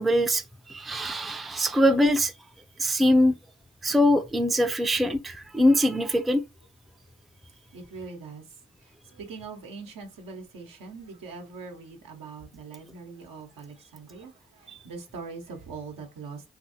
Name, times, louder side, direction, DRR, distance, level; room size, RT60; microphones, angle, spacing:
voice 1, 0.0-2.3 2.8-3.4 3.8-6.4, equal, ahead, 0.4 m, -23 dB
voice 2, 7.7-16.5, right 4 dB, 80° right, 0.9 m, -42 dB
2.8 x 2.7 x 2.6 m
supercardioid pair, 40°, 33 cm